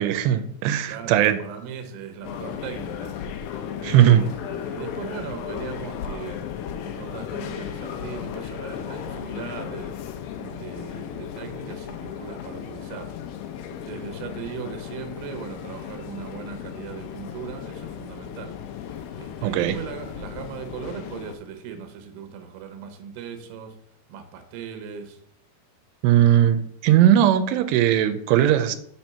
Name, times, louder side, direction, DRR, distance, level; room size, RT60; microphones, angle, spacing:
voice 1, 0.0-1.4 3.8-4.2 19.4-19.8 26.0-28.8, right 11 dB, 90° right, 9 dB, 2.7 m, -18 dB
voice 2, 0.9-6.4 6.8-9.9 10.4-13.1 13.7-18.5 19.2-23.8 24.1-25.2, right 7 dB, 70° right, 6 dB, 2.5 m, -38 dB
sound 1, 2.2-21.4, left 9 dB, 85° left, 2.1 m, -35 dB
6.1 x 4.4 x 5.5 m, 0.71 s
omnidirectional pair, 4.7 m